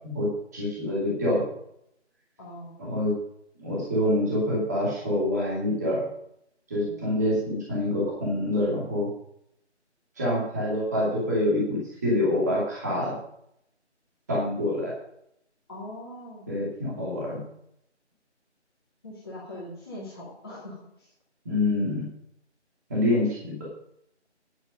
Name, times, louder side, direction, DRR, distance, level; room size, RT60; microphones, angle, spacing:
voice 1, 0.1-1.4 2.8-3.1 3.6-6.1 6.7-9.1 10.2-13.2 14.3-14.9 16.5-17.4 21.4-22.0 22.9-23.6, left 1 dB, 15° right, -6 dB, 2.5 m, -26 dB
voice 2, 2.4-2.8 6.8-7.0 15.7-16.5 19.0-21.1, left 1 dB, 20° left, -8 dB, 2.5 m, -41 dB
11.0 x 10.5 x 5.3 m, 0.75 s
figure-of-eight pair, 170°, 35 cm